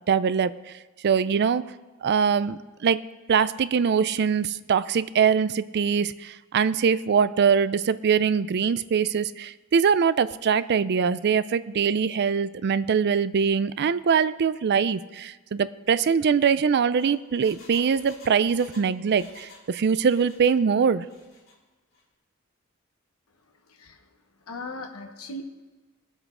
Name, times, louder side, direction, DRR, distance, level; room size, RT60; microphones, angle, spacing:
voice 1, 0.1-0.5 1.0-1.6 2.0-3.0 3.3-21.1, right 6 dB, 50° right, 16 dB, 0.4 m, -23 dB
Engine, 16.9-19.7 19.9-20.6 21.0-21.6 21.9-22.0, left 3 dB, 70° left, 2.7 m, -52 dB
voice 2, 24.5-25.4, left 2 dB, 85° left, 5 dB, 1.0 m, -37 dB
20.0 x 8.0 x 3.7 m, 1.2 s
head